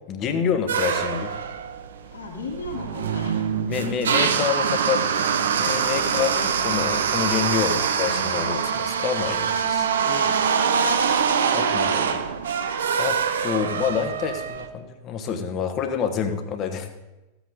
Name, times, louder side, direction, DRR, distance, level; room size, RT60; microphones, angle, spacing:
voice 1, 0.1-1.3 3.7-5.0 5.5-10.9 11.5-12.6 13.0-13.2 13.4-16.9, left 7 dB, 35° left, 7 dB, 1.3 m, -28 dB
sound 1, 0.7-14.7, right 7 dB, 65° right, 0.8 m, -24 dB
voice 2, 2.1-3.4 3.6-4.0 5.9-6.2 9.5-10.3, left 3 dB, 65° left, -3 dB, 2.5 m, -38 dB
14.5 x 8.3 x 4.0 m, 1.0 s
figure-of-eight pair, 90°, 0 cm